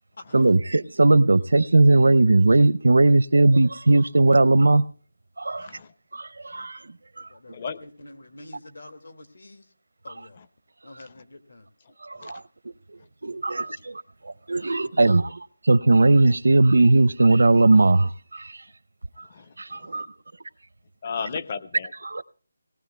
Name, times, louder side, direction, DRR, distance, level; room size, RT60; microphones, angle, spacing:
voice 1, 0.3-4.8 5.4-5.7 6.1-6.8 12.0-12.4 13.2-15.4 15.7-18.5 19.6-20.1 22.0-22.2, right 2 dB, 85° right, 0.6 m, -18 dB
voice 2, 7.2-9.7 10.0-10.4 10.8-11.7 14.8-15.3, left 2 dB, 75° left, 2.2 m, -46 dB
voice 3, 21.0-21.9, left 6 dB, 30° left, 0.6 m, -33 dB
25.5 x 18.5 x 2.2 m
figure-of-eight pair, 175°, 0 cm